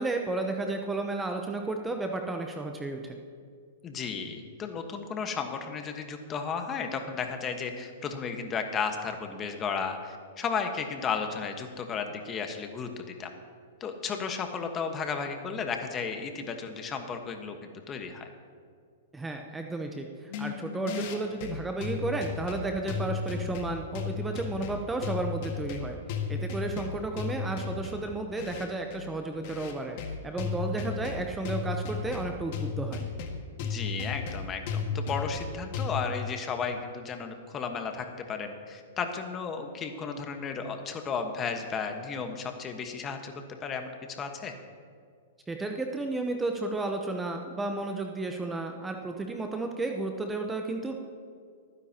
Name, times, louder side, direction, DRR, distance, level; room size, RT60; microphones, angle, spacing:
voice 1, 0.0-3.2 19.1-26.0 26.3-33.0 45.5-51.0, right 2 dB, 10° right, 4 dB, 0.8 m, -33 dB
voice 2, 3.8-12.9 13.2-13.3 13.8-17.6 17.9-18.3 33.6-43.3 43.6-44.5, left 5 dB, 25° left, 5 dB, 1.3 m, -34 dB
sound 1, 20.3-35.9, left 5 dB, 50° left, 1.8 m, -34 dB
25.5 x 9.8 x 2.9 m, 2.2 s
hypercardioid pair, 125°, 0 cm